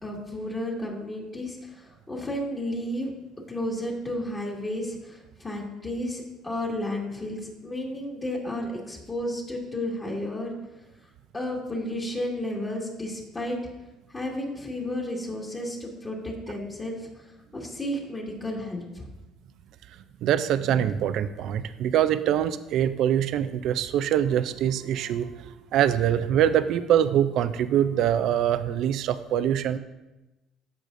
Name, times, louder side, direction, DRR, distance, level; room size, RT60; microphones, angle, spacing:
voice 1, 0.0-3.1 3.5-10.5 11.3-13.6 14.1-17.1 17.5-19.1, left 1 dB, 25° left, -2 dB, 1.8 m, -32 dB
voice 2, 20.2-29.8, right 10 dB, 65° right, 11 dB, 0.4 m, -24 dB
14.0 x 4.9 x 2.6 m, 1.0 s
supercardioid pair, 90°, 0 cm